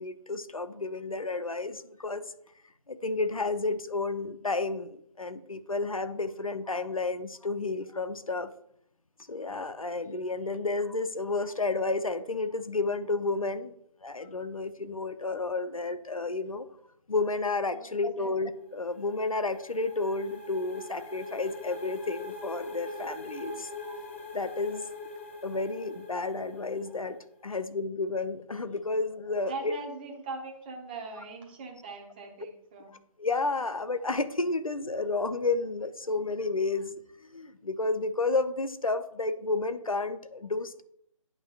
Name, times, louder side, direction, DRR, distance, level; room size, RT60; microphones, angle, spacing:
voice 1, 0.0-2.2 2.9-8.5 9.3-13.7 14.0-16.7 17.1-24.0 24.3-24.9 25.4-27.2 27.4-29.7 33.2-36.9 37.3-40.8, left 3 dB, 80° left, 11 dB, 0.7 m, -31 dB
voice 2, 17.8-18.3 27.5-27.6 29.5-32.9, right 3 dB, 15° right, 1 dB, 0.9 m, -41 dB
sound 1, 18.5-27.2, left 2 dB, 20° left, 0.6 m, -43 dB
9.1 x 5.7 x 2.5 m, 0.70 s
figure-of-eight pair, 150°, 17 cm